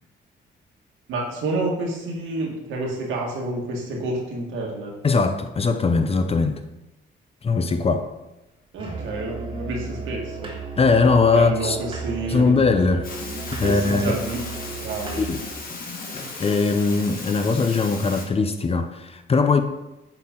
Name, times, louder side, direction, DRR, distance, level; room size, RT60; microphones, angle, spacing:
voice 1, 1.1-4.9 8.7-10.5 11.3-12.7 13.6-14.4 14.7-15.2, right 2 dB, 80° right, 1.8 m, -29 dB
voice 2, 5.0-6.6 7.4-8.1 10.8-11.8 12.3-13.1 13.5-14.2 15.2-15.4 16.1-19.6, left 4 dB, 30° left, 0.6 m, -20 dB
Musical instrument, 8.8-15.5, right 4 dB, 25° right, 1.5 m, -35 dB
sound 1, 13.0-18.3, left 3 dB, 45° left, 1.6 m, -36 dB
8.0 x 4.3 x 3.8 m
cardioid pair, 90°, 20 cm